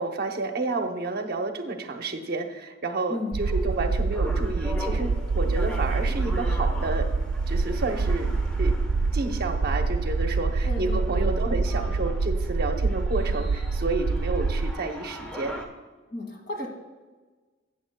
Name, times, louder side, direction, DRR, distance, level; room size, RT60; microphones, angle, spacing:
voice 1, 0.0-7.1 7.5-8.3 8.6-8.7 9.1-15.5, right 3 dB, 55° right, 5 dB, 0.8 m, -30 dB
voice 2, 3.1-3.4 10.6-11.4 16.1-16.7, left 2 dB, 60° left, 1 dB, 2.1 m, -34 dB
sound 1, 3.3-14.7, right 3 dB, 75° right, 0.4 m, -26 dB
sound 2, 3.4-15.7, equal, 5° left, 1.0 m, -40 dB
13.0 x 8.6 x 2.3 m, 1.3 s
head